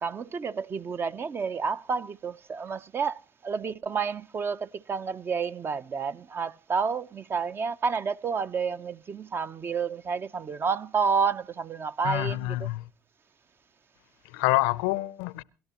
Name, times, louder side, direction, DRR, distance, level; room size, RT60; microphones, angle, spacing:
voice 1, 0.0-12.7, right 5 dB, 35° right, 0.7 m, -30 dB
voice 2, 12.0-12.9 14.2-15.4, left 19 dB, 75° left, 0.7 m, -27 dB
29.0 x 12.0 x 2.9 m
hypercardioid pair, 75°, 7 cm